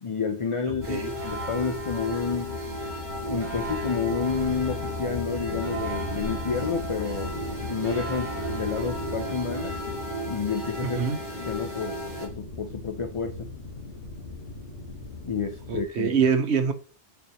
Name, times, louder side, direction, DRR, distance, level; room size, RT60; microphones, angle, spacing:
voice 1, 0.0-2.6 3.2-7.3 7.7-9.8 10.3-11.1 11.4-13.5 15.2-16.1, left 5 dB, 40° left, 0.5 m, -30 dB
sound 1, 0.7-15.8, left 3 dB, 55° left, 1.7 m, -38 dB
sound 2, 0.8-12.3, right 1 dB, 40° right, 2.3 m, -34 dB
voice 2, 10.8-11.2 15.7-16.7, right 6 dB, 75° right, 1.2 m, -24 dB
7.0 x 5.1 x 2.9 m
omnidirectional pair, 1.2 m